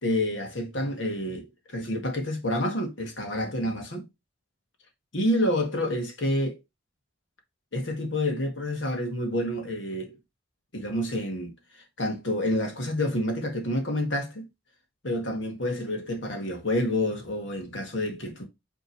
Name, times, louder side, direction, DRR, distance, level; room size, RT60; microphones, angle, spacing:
voice 1, 0.0-4.1 5.1-6.6 7.7-10.1 10.7-11.5 12.0-14.5 15.0-18.4, left 1 dB, 65° left, 1.8 m, -28 dB
5.7 x 3.7 x 4.6 m
head